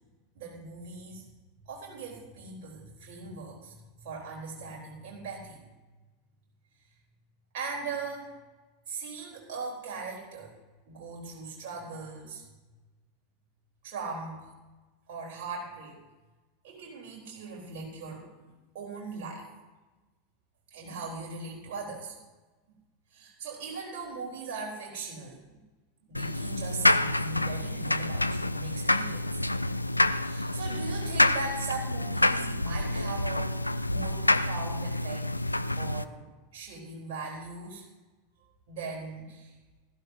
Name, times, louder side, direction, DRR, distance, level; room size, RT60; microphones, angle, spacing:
voice 1, 0.4-1.3 1.7-5.6 7.5-8.3 8.9-10.5 10.9-12.4 13.8-14.5 15.1-16.0 16.6-18.3 18.7-19.4 20.7-22.2 23.1-25.4 26.1-29.2 30.2-35.2 35.8-36.2 36.5-37.8 38.7-39.5, right 4 dB, 50° right, -4 dB, 3.8 m, -39 dB
sound 1, 26.1-36.0, left 1 dB, 85° left, 0.4 m, -27 dB
19.5 x 13.0 x 2.8 m, 1.2 s
figure-of-eight pair, 85°, 0 cm